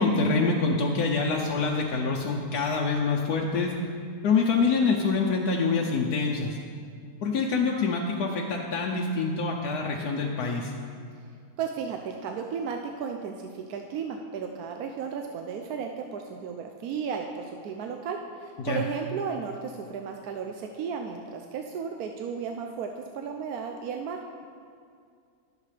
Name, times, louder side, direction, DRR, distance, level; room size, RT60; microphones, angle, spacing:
voice 1, 0.0-3.7 4.2-6.6 7.2-10.7 18.6-18.8, left 4 dB, 85° left, -1 dB, 1.3 m, -26 dB
voice 2, 11.6-24.2, right 6 dB, 75° right, 3 dB, 1.1 m, -34 dB
20.0 x 7.4 x 3.3 m, 2.3 s
omnidirectional pair, 1.6 m